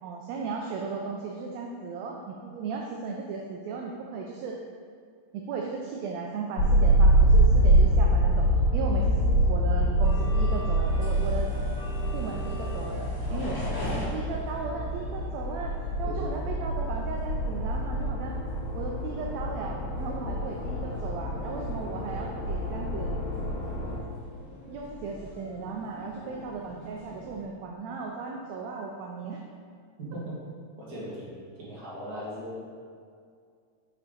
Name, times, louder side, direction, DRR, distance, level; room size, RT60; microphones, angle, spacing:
voice 1, 0.0-4.6 5.3-8.5 8.7-11.5 12.1-13.5 14.0-18.4 18.7-23.1 24.7-29.4, right 4 dB, 80° right, 0 dB, 1.7 m, -36 dB
sound 1, 6.6-24.0, right 1 dB, 80° left, 2.1 m, -25 dB
sound 2, 10.0-27.5, left 1 dB, 20° left, 0.6 m, -43 dB
voice 2, 13.3-13.8 16.0-16.3 30.0-30.4 30.8-32.6, equal, 35° right, -8 dB, 1.9 m, -38 dB
5.8 x 5.5 x 3.8 m, 2.2 s
omnidirectional pair, 3.4 m